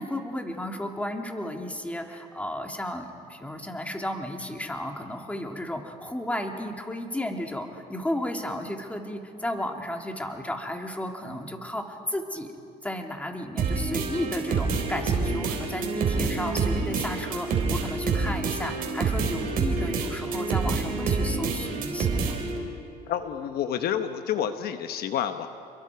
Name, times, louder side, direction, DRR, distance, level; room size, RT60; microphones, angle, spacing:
voice 1, 0.0-12.5 12.8-22.4, left 1 dB, 10° left, 3 dB, 2.2 m, -33 dB
sound 1, 13.6-22.6, right 4 dB, 60° right, 4.1 m, -27 dB
voice 2, 23.1-25.5, left 9 dB, 65° left, 8 dB, 1.0 m, -29 dB
29.0 x 22.5 x 4.7 m, 2.5 s
cardioid pair, 110°, 17 cm